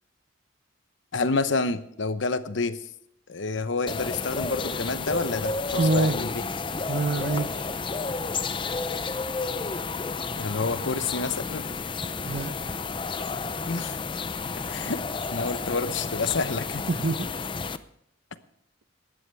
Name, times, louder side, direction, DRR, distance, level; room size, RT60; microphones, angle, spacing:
voice 1, 1.1-2.8 3.3-6.4 10.4-11.6 13.7-14.0 14.7-15.0 15.3-16.9, left 3 dB, 70° left, 12 dB, 0.9 m, -28 dB
sound 1, 3.9-17.8, left 4 dB, 25° left, 0.5 m, -31 dB
voice 2, 5.7-6.2 6.9-7.6 12.2-12.5 13.5-13.6 16.9-17.3, right 3 dB, 55° right, 12 dB, 0.8 m, -26 dB
18.0 x 13.0 x 3.4 m, 0.76 s
head